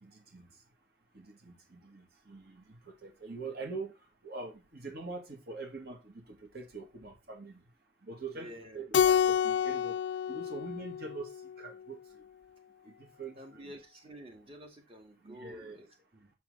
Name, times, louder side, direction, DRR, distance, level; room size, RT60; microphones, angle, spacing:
voice 1, 0.0-0.5 1.1-4.0 4.2-7.6 8.0-10.0 10.3-11.3 11.6-12.0 12.8-13.7 15.2-15.8, right 3 dB, 60° right, 2.5 m, -44 dB
voice 2, 8.3-8.8 13.4-16.3, equal, 35° right, 2.3 m, -50 dB
Keyboard (musical), 8.9-11.6, left 8 dB, 85° left, 0.4 m, -28 dB
7.0 x 5.9 x 4.1 m
head